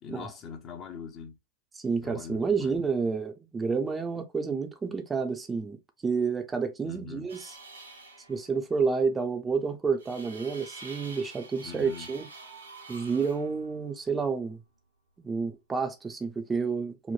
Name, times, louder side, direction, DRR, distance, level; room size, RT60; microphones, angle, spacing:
voice 1, 0.0-1.4 2.0-2.7 6.8-7.3 11.6-12.1, left 6 dB, 35° left, 0.6 m, -42 dB
voice 2, 1.7-5.8 6.0-7.6 8.3-12.3 12.9-14.6 15.2-17.1, right 5 dB, 15° right, 0.5 m, -29 dB
sound 1, 7.3-8.6 10.0-14.3, right 3 dB, 85° right, 1.0 m, -47 dB
3.1 x 2.1 x 2.4 m
hypercardioid pair, 100°, 0 cm